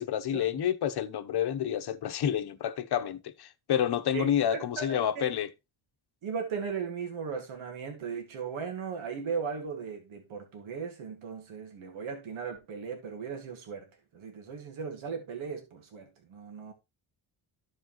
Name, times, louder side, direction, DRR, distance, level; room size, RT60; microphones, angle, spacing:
voice 1, 0.0-5.5, left 9 dB, 55° left, 1.0 m, -29 dB
voice 2, 4.1-5.3 6.2-13.9 14.1-16.7, right 6 dB, 80° right, 2.2 m, -37 dB
14.0 x 4.8 x 3.0 m
wide cardioid pair, 165°, 48 cm